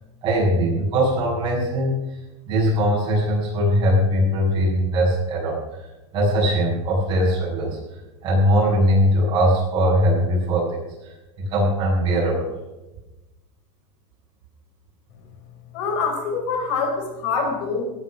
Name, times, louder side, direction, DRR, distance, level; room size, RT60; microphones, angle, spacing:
voice 1, 0.2-2.0 2.5-5.6 6.1-11.1 11.5-12.5, equal, 30° right, -4 dB, 7.7 m, -20 dB
voice 2, 15.7-17.8, left 4 dB, 65° left, 3 dB, 4.5 m, -25 dB
18.5 x 10.5 x 6.3 m, 1.0 s
supercardioid pair, 170°, 16 cm